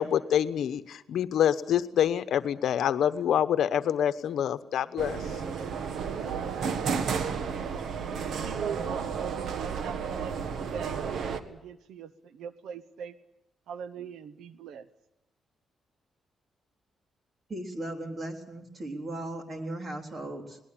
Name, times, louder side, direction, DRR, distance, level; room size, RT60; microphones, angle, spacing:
voice 1, 0.0-5.2, left 9 dB, 75° left, 12 dB, 1.0 m, -26 dB
sound 1, 5.0-11.4, right 6 dB, 65° right, 1.6 m, -32 dB
voice 2, 8.1-11.0 11.5-13.1 13.7-14.9, right 7 dB, 85° right, 15 dB, 0.9 m, -41 dB
voice 3, 17.5-20.6, right 1 dB, 35° right, 4 dB, 3.8 m, -37 dB
22.0 x 19.0 x 8.7 m, 0.84 s
cardioid pair, 115°, 0 cm